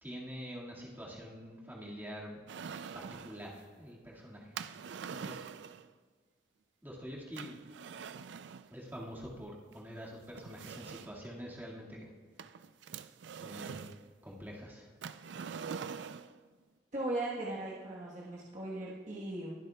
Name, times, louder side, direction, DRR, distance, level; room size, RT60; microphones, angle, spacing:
voice 1, 0.0-2.4 2.9-5.4 6.8-7.6 8.7-12.1 13.4-13.9 14.2-14.9, equal, 10° right, -5 dB, 1.9 m, -46 dB
sound 1, 2.5-3.4 4.5-5.9 7.4-8.7 9.7-9.8 10.3-11.3 12.4-14.0 15.0-16.4, right 6 dB, 85° right, 0.4 m, -44 dB
voice 2, 16.9-19.5, right 2 dB, 45° right, -6 dB, 1.2 m, -38 dB
21.5 x 8.0 x 2.3 m, 1.5 s
head